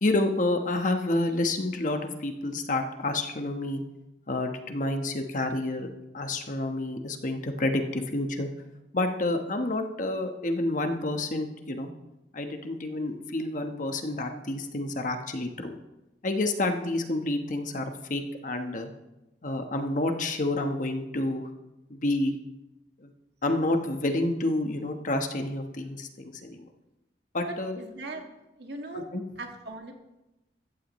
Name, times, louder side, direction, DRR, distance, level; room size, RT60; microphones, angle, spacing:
voice 1, 0.0-3.8 4.3-8.5 8.9-11.9 12.3-15.7 16.2-18.9 19.4-21.5 21.9-22.3 23.0-23.1 23.4-26.7 27.3-27.8 28.9-29.2, left 2 dB, 45° left, 5 dB, 1.2 m, -29 dB
voice 2, 27.5-28.3 28.6-29.0 29.4-29.9, right 2 dB, 70° right, 3 dB, 1.8 m, -39 dB
15.0 x 14.0 x 3.1 m, 0.96 s
head